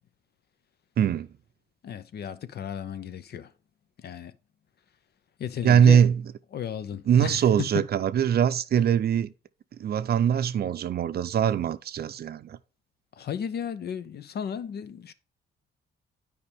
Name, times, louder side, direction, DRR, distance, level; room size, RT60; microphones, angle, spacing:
voice 1, 1.0-1.3 5.6-6.2 7.1-9.3 9.8-12.6, right 8 dB, 55° right, 0.6 m, -22 dB
voice 2, 1.8-3.5 4.0-4.3 5.4-6.0 6.5-7.9 13.2-15.1, left 9 dB, 55° left, 0.6 m, -34 dB
9.8 x 5.0 x 3.4 m
cardioid pair, 90°, 20 cm